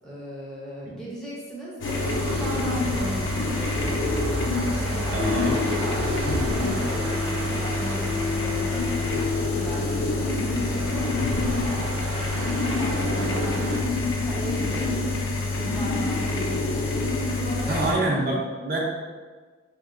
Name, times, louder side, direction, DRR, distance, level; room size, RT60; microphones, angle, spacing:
voice 1, 0.0-4.1 4.7-7.2 7.5-12.5 12.8-13.6 14.2-15.1 15.4-18.1, equal, 5° left, -7 dB, 0.5 m, -37 dB
sound 1, 1.8-17.9, left 2 dB, 65° left, 0.4 m, -26 dB
sound 2, 1.8-13.8, right 3 dB, 90° right, 0.4 m, -34 dB
voice 2, 5.1-5.6 13.0-13.8 17.7-18.8, right 2 dB, 45° right, -3 dB, 0.5 m, -27 dB
sound 3, 5.2-10.9, left 6 dB, 85° left, 1.2 m, -33 dB
3.0 x 2.9 x 2.4 m, 1.4 s
head